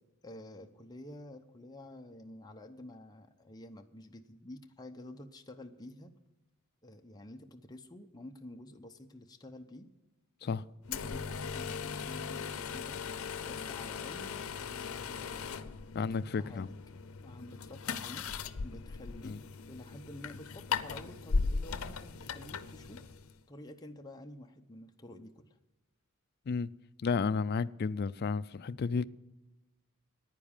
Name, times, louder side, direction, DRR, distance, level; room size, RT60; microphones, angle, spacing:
voice 1, 0.2-6.1 6.8-9.9 10.4-13.0 13.4-16.1 16.4-16.7 17.2-18.3 18.6-19.4 19.7-23.0 23.5-25.6, left 1 dB, 20° left, 0.7 m, -50 dB
sound 1, 10.8-23.4, left 5 dB, 85° left, 0.6 m, -38 dB
voice 2, 15.9-16.7 19.2-19.4 26.5-26.7 27.0-29.0, left 5 dB, 50° left, 0.4 m, -32 dB
9.9 x 9.8 x 7.2 m
head